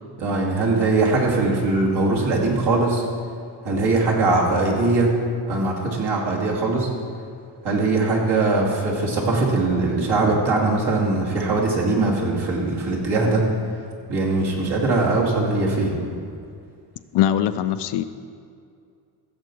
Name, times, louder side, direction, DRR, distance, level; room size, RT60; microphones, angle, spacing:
voice 1, 0.2-3.0 3.6-5.1 5.5-6.9 7.6-13.4 14.1-16.0, right 3 dB, 55° right, -3 dB, 2.5 m, -21 dB
voice 2, 17.1-18.0, left 11 dB, 60° left, 11 dB, 0.5 m, -21 dB
15.5 x 7.0 x 4.6 m, 2.3 s
cardioid pair, 115°, 47 cm